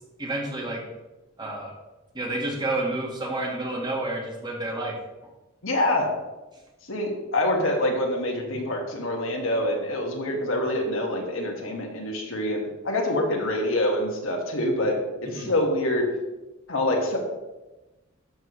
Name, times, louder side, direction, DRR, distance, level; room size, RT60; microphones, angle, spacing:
voice 1, 0.2-0.8 1.4-1.7 2.1-5.0 15.2-15.5, right 2 dB, 20° right, -1 dB, 1.7 m, -30 dB
voice 2, 5.6-6.1 6.9-16.1 16.7-17.2, left 1 dB, 80° left, 0 dB, 1.8 m, -26 dB
12.0 x 6.7 x 3.2 m, 1.1 s
head